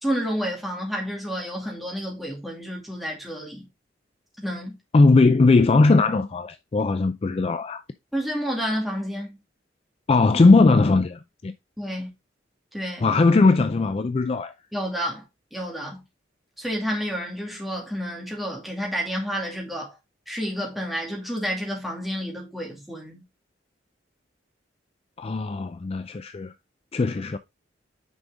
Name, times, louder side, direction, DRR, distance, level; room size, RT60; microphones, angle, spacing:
voice 1, 0.0-3.7 4.4-4.7 8.1-9.4 11.8-12.1 12.7-13.0 14.7-15.2 15.5-16.0 16.6-20.0 20.3-23.2, equal, ahead, 2.4 m, -30 dB
voice 2, 4.9-7.8 10.1-11.5 13.0-14.5 25.2-26.5 26.9-27.4, left 3 dB, 30° left, 0.4 m, -19 dB
6.2 x 5.3 x 3.4 m
head